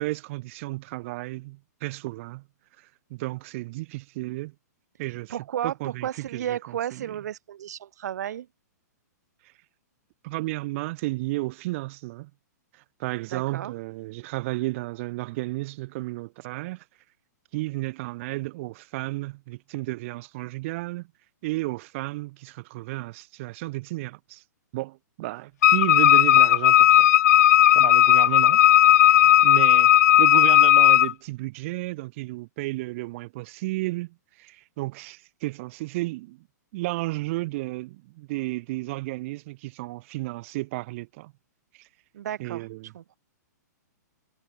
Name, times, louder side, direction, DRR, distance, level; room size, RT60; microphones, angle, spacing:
voice 1, 0.0-2.5 2.8-4.5 5.0-7.1 10.2-12.3 12.7-16.8 17.5-21.1 21.4-24.4 24.7-27.1 27.7-28.7 29.1-29.9 30.2-36.5 36.7-41.3 41.7-41.9 42.4-42.9, right 21 dB, 45° right, 5.0 m, -33 dB
voice 2, 5.3-8.5 13.3-13.7 42.1-42.6 42.9-43.2, right 10 dB, 65° right, 1.9 m, -33 dB
Wind instrument woodwind instrument, 25.6-31.1, left 12 dB, 65° left, 0.6 m, -16 dB
hypercardioid pair, 135°, 9 cm